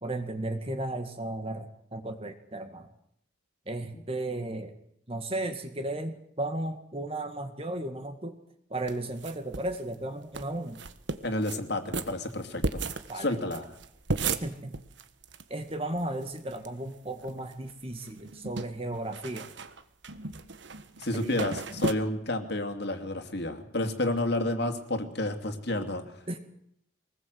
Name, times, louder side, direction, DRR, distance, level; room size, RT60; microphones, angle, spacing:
voice 1, 0.0-2.9 3.7-4.7 5.1-8.4 8.7-10.8 13.1-13.4 14.4-14.8 15.5-19.5 21.1-21.5 26.3-26.4, right 1 dB, 30° right, 7 dB, 2.1 m, -35 dB
sound 1, 8.9-9.8 10.0-10.1 10.3-10.4 10.7-11.6 11.9-15.4 15.7-15.8 16.0-16.7 17.1-17.7 18.0-21.9, right 3 dB, 70° right, 1.5 m, -34 dB
voice 2, 11.2-13.7 21.0-26.4, left 1 dB, 60° left, 7 dB, 2.7 m, -31 dB
24.0 x 19.5 x 8.0 m, 0.71 s
head